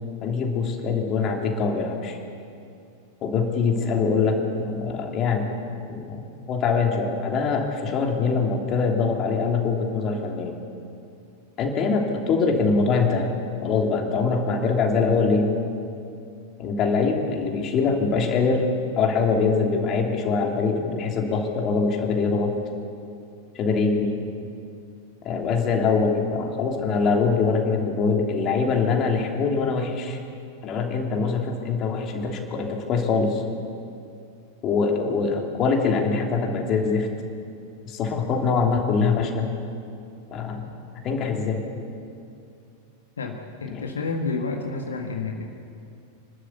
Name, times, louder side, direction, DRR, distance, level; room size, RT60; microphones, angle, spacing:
voice 1, 0.2-2.2 3.2-5.5 5.9-10.6 11.6-13.3 13.6-15.5 16.6-18.7 19.0-22.5 23.5-24.1 25.2-30.2 30.6-33.4 34.6-37.1 37.8-39.5 40.3-40.7 41.0-41.6 43.7-43.9, left 4 dB, 35° left, 2 dB, 3.0 m, -23 dB
voice 2, 43.2-45.4, left 4 dB, 70° left, 3 dB, 1.6 m, -30 dB
26.5 x 13.0 x 8.4 m, 2.5 s
figure-of-eight pair, 90°, 0 cm